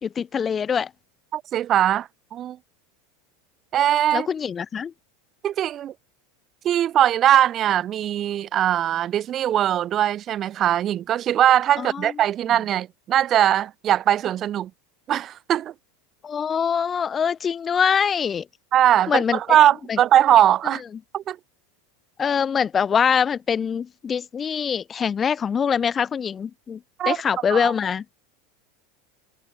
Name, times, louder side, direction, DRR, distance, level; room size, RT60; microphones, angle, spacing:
voice 1, 0.0-0.9 4.1-4.9 11.8-12.1 16.2-18.5 19.1-19.4 19.9-20.0 22.2-26.8 27.1-28.0, left 7 dB, 25° left, 0.8 m, -23 dB
voice 2, 1.3-2.6 3.7-4.3 5.4-5.9 6.6-14.7 15.1-15.7 18.7-20.8 21.1-21.4 27.0-27.2 27.5-27.7, right 11 dB, 35° right, 1.3 m, -20 dB
supercardioid pair, 125°, 0 cm